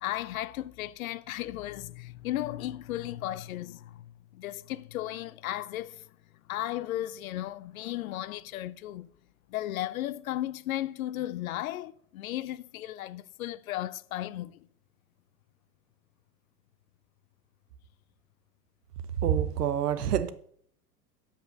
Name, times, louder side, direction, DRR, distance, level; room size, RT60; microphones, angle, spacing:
voice 1, 0.0-6.1 6.5-9.1 9.5-14.7, left 14 dB, 60° left, 0.6 m, -35 dB
voice 2, 19.2-20.3, right 9 dB, 70° right, 0.9 m, -27 dB
7.3 x 5.6 x 5.9 m
figure-of-eight pair, 95°, 48 cm